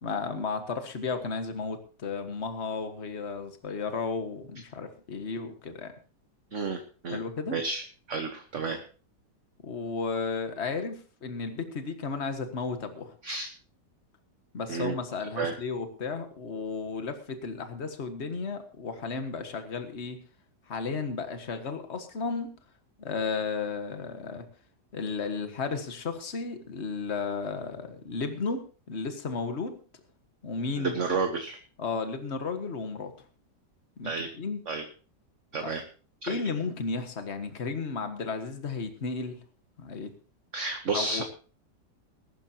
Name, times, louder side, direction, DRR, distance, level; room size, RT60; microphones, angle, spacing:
voice 1, 0.0-5.9 7.1-7.6 9.6-13.1 14.5-20.2 20.7-22.5 23.0-24.5 24.9-29.8 30.4-30.9 31.8-33.1 34.0-34.1 34.4-34.6 35.6-35.7 36.3-39.4 39.8-40.1 40.9-41.2, left 4 dB, 40° left, 7 dB, 1.8 m, -33 dB
voice 2, 6.5-7.2 7.5-7.8 8.1-8.8 13.2-13.5 14.7-15.0 15.4-15.5 30.8-31.6 34.0-34.3 34.7-34.8 35.5-35.8 36.2-36.4 40.5-41.2, right 4 dB, 45° right, 5 dB, 1.5 m, -31 dB
20.5 x 12.0 x 2.9 m, 0.37 s
omnidirectional pair, 1.9 m